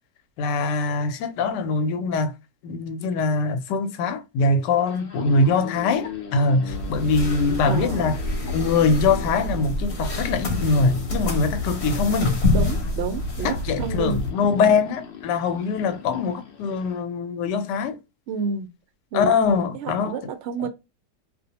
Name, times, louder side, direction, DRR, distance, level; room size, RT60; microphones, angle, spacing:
voice 1, 0.4-2.4 2.6-8.2 8.5-12.4 13.4-18.0 19.1-20.2, left 4 dB, 90° left, 1.2 m, -23 dB
sound 1, 4.8-17.0, left 8 dB, 70° left, 0.5 m, -40 dB
sound 2, 6.7-14.3, left 2 dB, 50° left, 1.0 m, -27 dB
voice 2, 7.6-8.1 12.5-14.2 18.3-18.7 19.1-19.4 19.7-20.7, right 5 dB, 75° right, 0.6 m, -30 dB
2.7 x 2.0 x 2.7 m
omnidirectional pair, 1.8 m